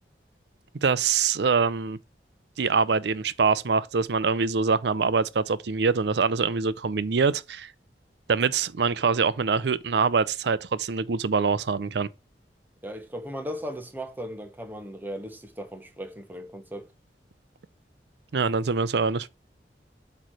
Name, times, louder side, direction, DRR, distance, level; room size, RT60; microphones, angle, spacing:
voice 1, 0.8-2.0 2.6-7.7 8.3-12.1 18.3-19.3, right 5 dB, 65° right, 0.5 m, -24 dB
voice 2, 12.8-16.9, equal, 10° right, 1.1 m, -37 dB
8.2 x 3.2 x 6.2 m
head